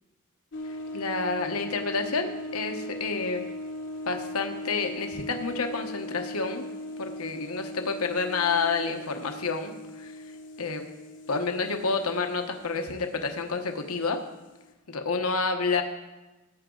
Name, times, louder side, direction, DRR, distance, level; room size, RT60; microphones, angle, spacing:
sound 1, 0.5-14.7, left 1 dB, 60° left, 1.0 m, -39 dB
voice 1, 0.9-3.5 4.1-6.7 7.0-10.2 10.6-10.8 11.3-14.2 14.9-15.8, left 4 dB, 80° left, 5 dB, 1.1 m, -29 dB
16.0 x 8.1 x 3.9 m, 1.1 s
head